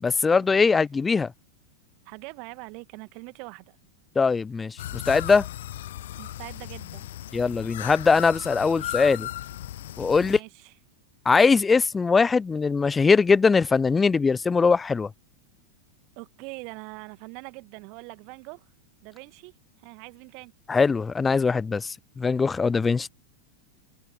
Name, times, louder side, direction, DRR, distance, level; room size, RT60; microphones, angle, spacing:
voice 1, 0.0-1.3 4.2-5.5 7.3-9.3 10.0-10.4 11.3-15.1 20.7-23.1, left 4 dB, 15° left, 0.6 m, -21 dB
voice 2, 2.1-3.8 6.2-7.1 10.2-10.7 16.2-18.7 19.0-19.5 19.8-20.5 22.6-22.9, right 32 dB, 45° right, 2.0 m, -43 dB
sound 1, 4.8-10.4, left 13 dB, 60° left, 0.4 m, -36 dB
figure-of-eight pair, 90°, 0 cm